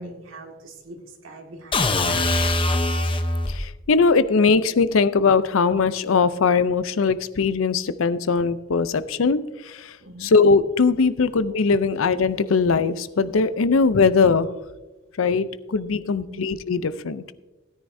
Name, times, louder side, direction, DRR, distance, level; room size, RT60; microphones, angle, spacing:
voice 1, 0.0-2.3 10.0-10.4 16.2-16.4, right 1 dB, 85° right, 2 dB, 1.9 m, -41 dB
sound 1, 1.7-3.7, left 2 dB, 25° left, 0.8 m, -22 dB
voice 2, 3.5-9.9 10.2-14.5 15.2-17.2, left 4 dB, 85° left, 15 dB, 0.5 m, -20 dB
16.5 x 10.0 x 2.7 m, 1.1 s
head